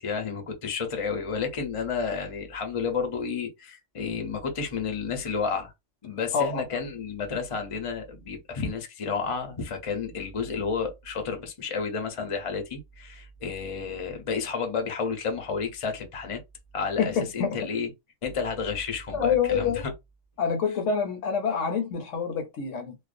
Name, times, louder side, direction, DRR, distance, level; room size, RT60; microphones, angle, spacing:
voice 1, 0.0-5.7 6.0-16.4 16.7-17.9 18.2-19.7, left 5 dB, 45° left, 0.4 m, -31 dB
voice 2, 6.3-6.8 17.0-17.6 19.1-19.8 20.4-23.0, left 6 dB, 70° left, 0.8 m, -27 dB
2.4 x 2.1 x 2.4 m
omnidirectional pair, 1.4 m